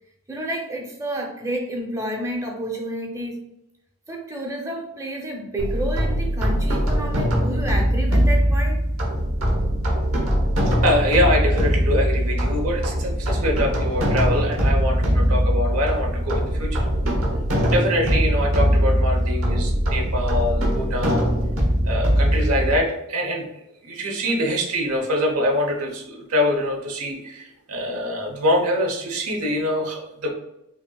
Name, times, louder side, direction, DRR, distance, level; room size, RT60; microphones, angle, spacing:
voice 1, 0.3-3.4 4.1-8.8, right 1 dB, 15° right, 0 dB, 0.6 m, -30 dB
sound 1, 5.6-22.8, equal, 65° right, 1.1 m, -21 dB
voice 2, 10.8-16.8 17.7-21.3 21.8-23.4 23.8-30.3, equal, 85° right, 1 dB, 1.0 m, -24 dB
5.6 x 2.7 x 2.3 m, 0.85 s
head